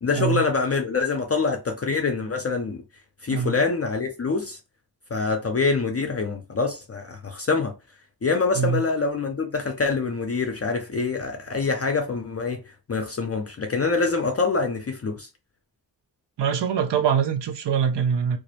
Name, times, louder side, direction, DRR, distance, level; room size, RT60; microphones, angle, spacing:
voice 1, 0.0-2.8 3.2-4.6 5.1-7.7 8.2-12.6 12.9-15.3, left 4 dB, 40° left, 0.4 m, -25 dB
voice 2, 16.4-18.4, right 7 dB, 75° right, 0.6 m, -23 dB
2.4 x 2.0 x 2.7 m
wide cardioid pair, 100°, 42 cm